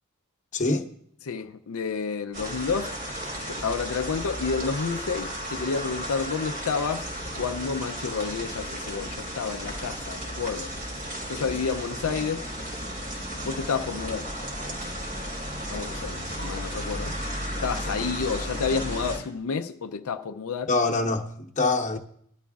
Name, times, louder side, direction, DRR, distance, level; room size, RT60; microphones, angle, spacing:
voice 1, 0.5-0.9 20.7-22.0, left 3 dB, 35° left, 0.9 m, -25 dB
voice 2, 1.2-2.9 3.5-7.1 7.4-10.7 11.3-12.5 13.4-14.3 15.7-17.2 17.6-20.7, left 5 dB, 80° left, 0.5 m, -30 dB
sound 1, 2.3-19.2, equal, 40° right, 3.5 m, -34 dB
19.5 x 12.5 x 2.4 m
head